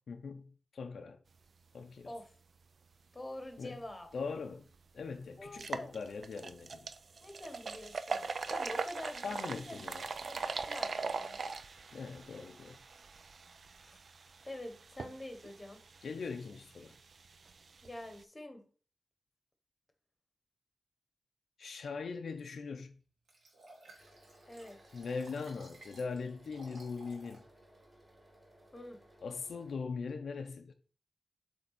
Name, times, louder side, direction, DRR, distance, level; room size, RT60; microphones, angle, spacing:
voice 1, 0.1-1.2 1.7-2.1 3.6-3.8 4.1-4.6 4.9-6.9 9.2-10.1 11.9-12.8 16.0-16.9 21.6-22.9 24.9-27.4 29.2-30.7, left 5 dB, 75° left, 0.6 m, -41 dB
voice 2, 3.1-4.1 5.4-5.9 7.2-9.8 10.2-11.4 13.8-14.0 14.4-15.8 17.8-18.6 24.5-24.8 28.7-29.0, left 1 dB, 15° left, 1.1 m, -46 dB
sound 1, 4.2-4.3 4.7-4.8 5.5-18.2, right 4 dB, 50° right, 0.4 m, -42 dB
Liquid, 23.3-27.4 27.9-28.0, right 2 dB, 75° right, 2.2 m, -57 dB
sound 2, 24.0-29.7, right 1 dB, 15° right, 1.8 m, -62 dB
7.9 x 3.5 x 4.1 m
wide cardioid pair, 170°, 0 cm